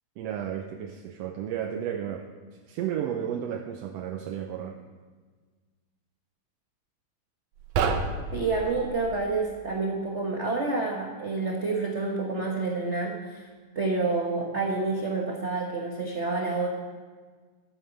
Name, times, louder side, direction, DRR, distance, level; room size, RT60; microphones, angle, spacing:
voice 1, 0.2-2.3 2.7-4.8, right 9 dB, 75° right, 4 dB, 1.6 m, -33 dB
sound 1, 7.6-9.2, right 5 dB, 90° right, 2.4 m, -29 dB
voice 2, 8.3-13.4 13.7-16.7, right 3 dB, 55° right, -1 dB, 0.7 m, -28 dB
13.5 x 8.9 x 7.0 m, 1.5 s
omnidirectional pair, 3.3 m